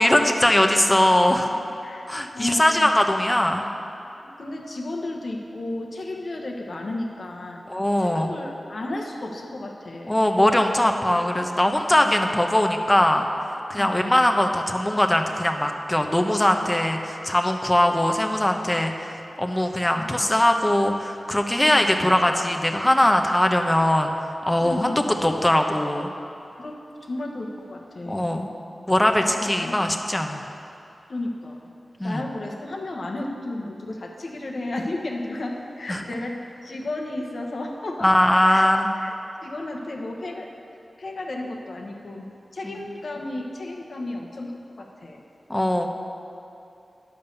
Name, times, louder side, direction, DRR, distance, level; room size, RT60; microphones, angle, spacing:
voice 1, 0.0-1.5 2.1-3.7 7.7-8.3 10.1-13.3 13.7-24.1 24.5-24.9 25.2-26.1 28.0-28.5 28.9-30.4 32.0-32.2 35.9-36.0 38.0-38.9 42.6-42.8 45.5-45.9, left 1 dB, 20° left, 4 dB, 0.9 m, -21 dB
voice 2, 1.8-2.9 4.2-7.6 8.0-10.2 11.9-12.1 13.8-14.3 20.0-20.4 21.6-21.9 24.6-25.1 26.6-28.3 29.2-29.9 31.1-31.7 32.0-38.2 38.5-38.7 39.0-39.1 39.4-40.5 41.0-42.3 42.5-45.2, left 2 dB, 70° left, 1 dB, 1.1 m, -33 dB
10.5 x 5.3 x 6.9 m, 2.8 s
cardioid pair, 45°, 0 cm